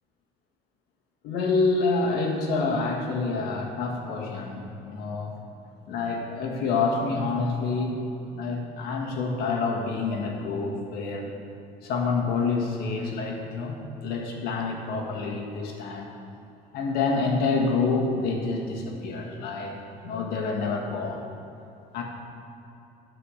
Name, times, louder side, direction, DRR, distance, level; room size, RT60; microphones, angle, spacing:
voice 1, 1.2-5.3 5.9-8.0 8.3-11.3 11.8-13.8 14.0-16.1 16.7-19.7 20.0-21.2 21.9-22.0, left 4 dB, 80° left, 1 dB, 1.7 m, -27 dB
13.0 x 4.9 x 6.4 m, 2.9 s
cardioid pair, 135°, 16 cm